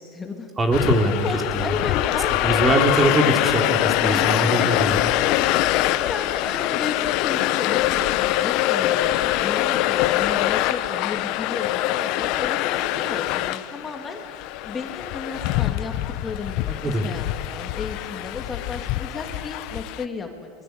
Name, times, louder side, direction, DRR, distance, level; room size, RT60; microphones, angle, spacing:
voice 1, 0.0-0.5 1.0-2.7 4.1-14.2 14.6-15.9 16.2-20.5, left 4 dB, 20° left, 3 dB, 2.9 m, -33 dB
voice 2, 0.6-1.3 1.5-1.7 2.4-5.0 16.8-17.1, right 1 dB, 20° right, 4 dB, 3.2 m, -22 dB
sound 1, 0.7-20.1, left 15 dB, 55° left, 0.9 m, -24 dB
23.0 x 21.5 x 8.1 m, 2.1 s
hypercardioid pair, 110°, 0 cm